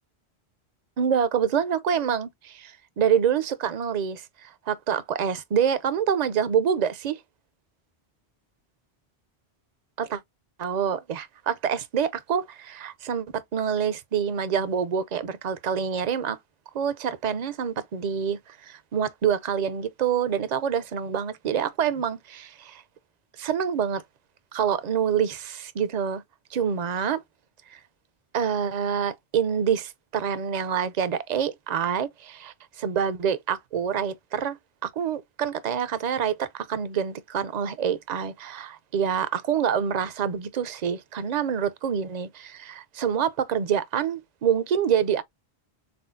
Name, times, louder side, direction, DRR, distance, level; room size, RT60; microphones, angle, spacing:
voice 1, 1.0-7.2 10.0-10.2 10.6-16.4 16.7-22.8 23.4-24.0 24.5-26.2 26.5-27.2 27.7-27.8 28.3-34.6 34.8-45.2, right 8 dB, 50° right, 0.6 m, -26 dB
4.3 x 3.8 x 2.5 m
omnidirectional pair, 1.1 m